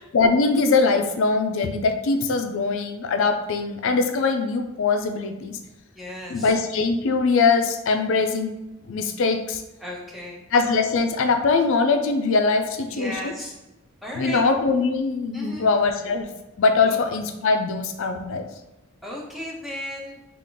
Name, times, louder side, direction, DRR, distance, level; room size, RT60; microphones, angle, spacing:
voice 1, 0.1-5.6 6.3-8.5 8.9-9.6 10.5-13.3 14.1-16.3 16.6-18.5, left 4 dB, 65° left, 7 dB, 0.4 m, -22 dB
voice 2, 5.9-6.5 9.8-10.4 12.9-13.5 14.0-14.4 15.3-15.7 16.8-17.0 19.0-20.2, equal, ahead, -4 dB, 0.6 m, -35 dB
3.5 x 2.4 x 3.8 m, 0.99 s
head